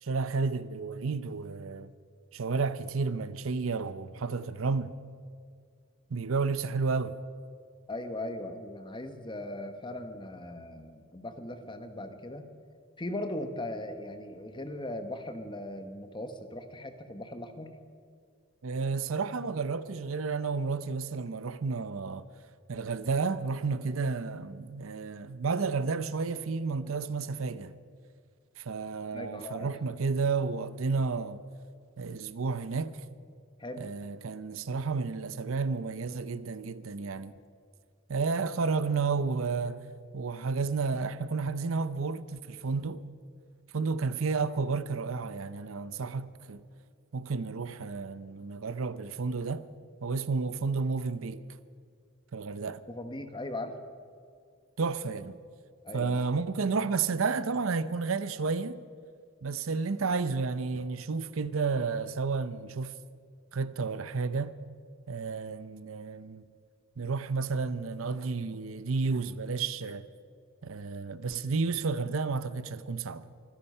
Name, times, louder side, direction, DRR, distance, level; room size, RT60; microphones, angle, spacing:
voice 1, 0.0-1.9 2.3-5.0 6.1-7.2 18.6-22.3 22.7-27.7 28.6-31.4 32.0-33.0 33.8-37.3 38.1-39.9 40.1-43.0 43.7-46.6 47.1-49.7 50.0-51.4 52.3-52.8 54.8-55.4 55.9-58.8 59.4-63.0 63.5-64.6 65.1-66.5 67.0-70.1 70.6-73.2, right 4 dB, 80° right, 0.6 m, -31 dB
voice 2, 7.9-12.5 13.0-17.7 29.1-29.7 33.6-33.8 52.9-53.7 55.8-56.2, left 1 dB, 25° left, 1.1 m, -39 dB
25.0 x 10.0 x 5.6 m
head